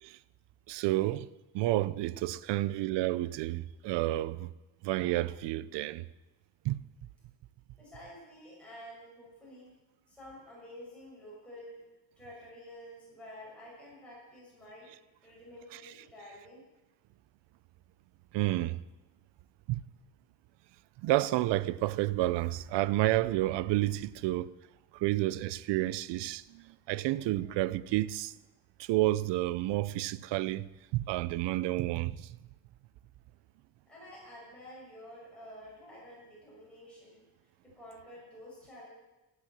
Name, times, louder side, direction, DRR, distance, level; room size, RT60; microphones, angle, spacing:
voice 1, 0.7-1.3 1.5-4.5 4.8-6.1 6.6-6.8 18.3-18.8 19.7-19.8 21.0-24.5 24.9-28.3 28.8-32.3, right 16 dB, 80° right, 0.7 m, -30 dB
voice 2, 7.8-9.7 10.1-11.8 12.2-14.9 15.2-16.6 33.9-37.2 37.7-38.9, left 1 dB, 5° left, 6.6 m, -50 dB
14.5 x 9.5 x 7.6 m
cardioid pair, 135°, 42 cm